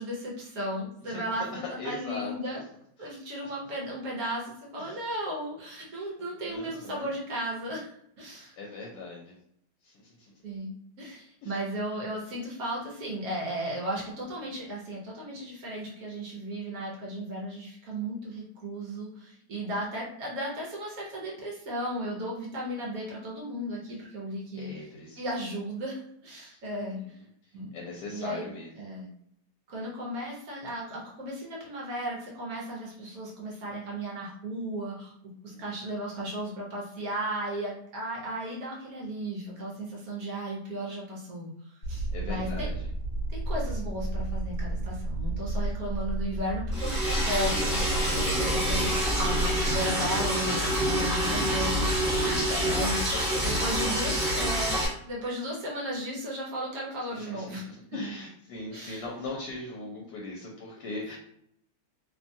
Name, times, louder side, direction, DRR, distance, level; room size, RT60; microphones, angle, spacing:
voice 1, 0.0-2.6 3.0-8.5 10.4-24.7 25.2-27.2 27.5-27.7 28.1-28.4 28.8-29.1 29.7-35.1 35.4-42.7 43.3-48.1 48.4-52.0 52.7-53.0 53.4-57.7 58.7-59.0 59.9-60.0, right 1 dB, 65° right, -3 dB, 1.1 m, -35 dB
voice 2, 1.0-1.5 1.8-2.6 3.0-3.1 3.4-3.5 4.8-5.0 5.9-6.1 6.4-7.1 8.4-9.3 9.8-10.3 11.4-11.6 19.5-19.7 24.6-25.3 26.5-26.6 26.8-28.7 35.5-35.7 41.9-42.9 48.2-48.7 52.2-53.6 57.1-61.2, left 2 dB, 75° left, -2 dB, 1.2 m, -40 dB
sound 1, 41.8-49.8, right 1 dB, 50° left, 0.9 m, -32 dB
Liquid, 46.7-54.9, equal, 30° right, 1.2 m, -27 dB
3.0 x 2.2 x 2.6 m, 0.70 s
omnidirectional pair, 1.8 m